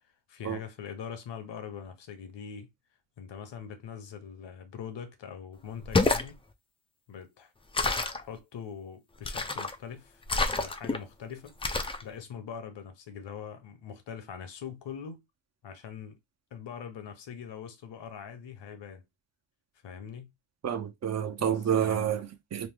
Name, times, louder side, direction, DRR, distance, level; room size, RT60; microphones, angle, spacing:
voice 1, 0.3-2.7 3.2-6.4 7.1-7.5 8.2-11.5 12.0-15.2 15.6-16.2 16.5-19.0 19.8-20.3 21.4-22.1, left 7 dB, 70° left, 0.9 m, -42 dB
sound 1, 5.8-6.3 7.7-8.2 9.2-9.8 10.3-11.0 11.6-12.0, left 3 dB, 15° left, 0.3 m, -28 dB
voice 2, 20.6-22.7, right 9 dB, 35° right, 0.7 m, -29 dB
3.1 x 2.0 x 3.4 m
cardioid pair, 95°, 45 cm